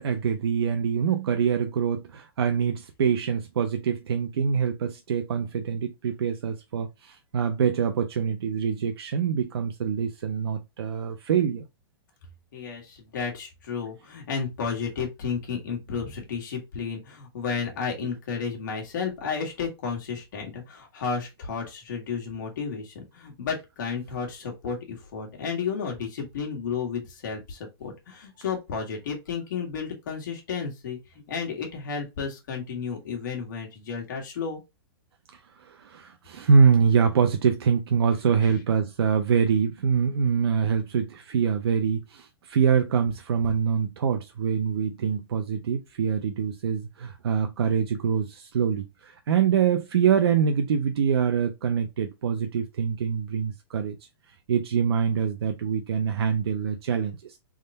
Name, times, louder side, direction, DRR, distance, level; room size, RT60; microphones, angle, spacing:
voice 1, 0.0-11.6 35.3-54.0 54.5-57.4, right 6 dB, 75° right, 0.5 m, -25 dB
voice 2, 12.5-31.0 31.3-34.6 38.4-38.6, left 6 dB, 50° left, 1.3 m, -32 dB
3.6 x 2.2 x 3.9 m
hypercardioid pair, 180°, 13 cm